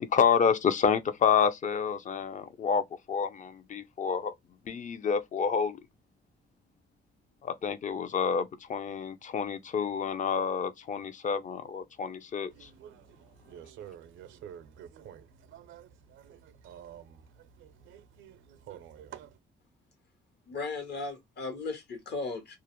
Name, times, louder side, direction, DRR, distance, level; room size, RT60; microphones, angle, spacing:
voice 1, 0.0-4.3 4.7-5.8 7.4-12.7, left 6 dB, 40° left, 0.5 m, -28 dB
voice 2, 12.5-17.3 17.6-19.3, right 9 dB, 80° right, 0.5 m, -49 dB
voice 3, 20.5-22.6, left 3 dB, 60° left, 1.0 m, -36 dB
2.3 x 2.0 x 2.9 m
cardioid pair, 90°, 20 cm